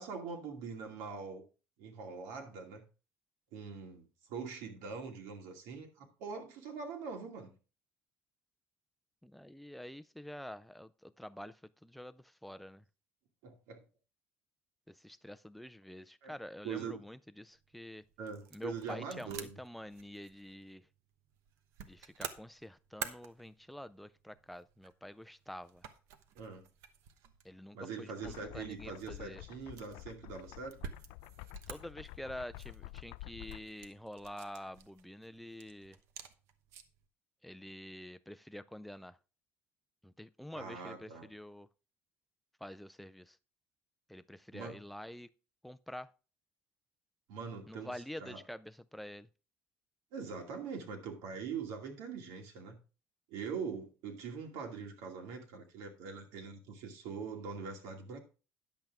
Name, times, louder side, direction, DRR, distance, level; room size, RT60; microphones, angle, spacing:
voice 1, 0.0-1.4 1.8-2.8 3.5-7.5 13.4-13.8 16.2-16.3 16.6-17.0 18.2-19.6 26.3-26.7 27.7-30.8 40.5-41.3 44.5-44.8 47.3-48.4 50.1-52.8 53.3-58.2, right 5 dB, 85° right, 2.4 m, -43 dB
voice 2, 9.2-12.8 14.9-18.0 18.5-20.9 21.8-25.9 27.4-29.4 31.7-36.0 37.4-39.2 40.0-41.7 42.6-43.4 44.1-45.3 45.6-46.1 47.7-49.3, left 1 dB, ahead, 0.3 m, -47 dB
sound 1, 17.5-37.1, right 8 dB, 65° right, 1.0 m, -51 dB
sound 2, 28.2-33.6, left 20 dB, 85° left, 0.4 m, -50 dB
10.5 x 7.8 x 3.6 m
cardioid pair, 175°, 5 cm